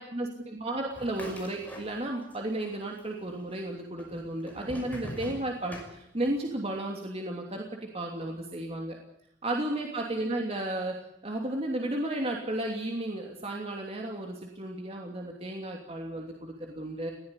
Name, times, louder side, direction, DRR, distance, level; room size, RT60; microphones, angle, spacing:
voice 1, 0.0-9.0 9.4-17.1, right 1 dB, 35° right, 1 dB, 2.9 m, -33 dB
sound 1, 0.9-2.4 2.6-3.4 4.0-6.5, equal, 10° left, 5.8 m, -43 dB
20.5 x 16.5 x 10.0 m, 0.77 s
head